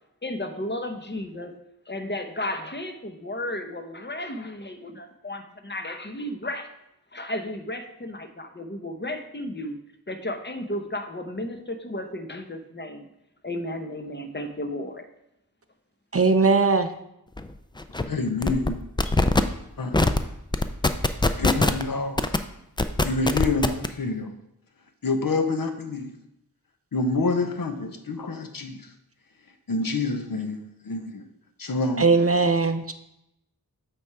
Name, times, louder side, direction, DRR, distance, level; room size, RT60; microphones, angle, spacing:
voice 1, 0.2-1.5 1.9-6.7 7.1-9.8 10.1-13.1 13.4-15.0, left 1 dB, 30° left, 6 dB, 0.9 m, -33 dB
voice 2, 16.1-16.9 32.0-32.9, right 4 dB, 40° right, 8 dB, 0.5 m, -19 dB
sound 1, 17.4-17.5 17.8-18.0 18.4-18.7 19.0-19.4 19.9-20.2 20.5-21.8 22.2-22.4 22.8-23.9, left 2 dB, 15° left, 0.4 m, -21 dB
voice 3, 18.0-18.8 19.8-20.0 21.4-22.2 23.0-24.3 25.0-26.1 26.9-28.9 29.7-30.6 30.8-31.2 31.6-32.0, left 3 dB, 60° left, 6 dB, 0.8 m, -27 dB
8.3 x 3.5 x 4.7 m, 0.84 s
wide cardioid pair, 40°, 38 cm